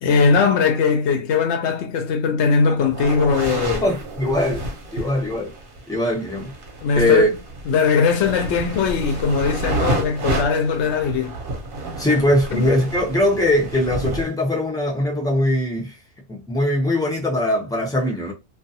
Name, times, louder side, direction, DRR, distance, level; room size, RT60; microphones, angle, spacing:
voice 1, 0.0-3.8 6.8-7.3 7.7-11.4 12.5-12.7, left 5 dB, 65° left, 0.7 m, -19 dB
sound 1, 2.8-14.2, right 2 dB, 50° right, 0.8 m, -30 dB
voice 2, 3.8-4.7 4.9-5.5 5.9-6.5 7.0-7.3 12.0-15.9 16.3-18.3, left 1 dB, 5° left, 0.3 m, -21 dB
2.4 x 2.3 x 2.7 m
omnidirectional pair, 1.4 m